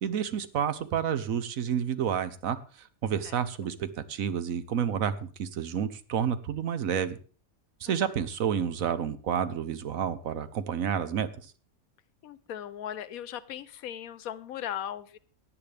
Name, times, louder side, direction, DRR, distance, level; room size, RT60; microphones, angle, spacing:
voice 1, 0.0-7.2 7.8-11.5, right 8 dB, 70° right, 13 dB, 1.2 m, -30 dB
voice 2, 3.2-3.7 7.9-8.2 12.2-15.2, left 10 dB, 80° left, 15 dB, 1.1 m, -39 dB
17.0 x 9.5 x 3.4 m, 0.38 s
omnidirectional pair, 1.5 m